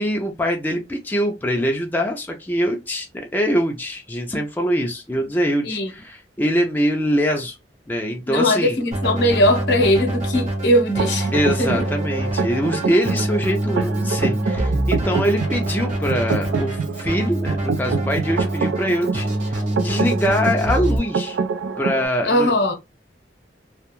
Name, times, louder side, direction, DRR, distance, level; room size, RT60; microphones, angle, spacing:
voice 1, 0.0-7.6 7.9-8.8 11.3-21.4 21.8-22.5, equal, 10° left, 0.3 m, -23 dB
voice 2, 8.3-11.3 11.6-11.7 12.8-12.9 22.2-22.7, left 1 dB, 75° left, 0.7 m, -19 dB
Keyboard (musical), 8.9-21.0, right 1 dB, 45° right, 1.0 m, -25 dB
sound 1, 11.0-22.1, right 5 dB, 80° right, 0.3 m, -27 dB
2.3 x 2.2 x 2.9 m
head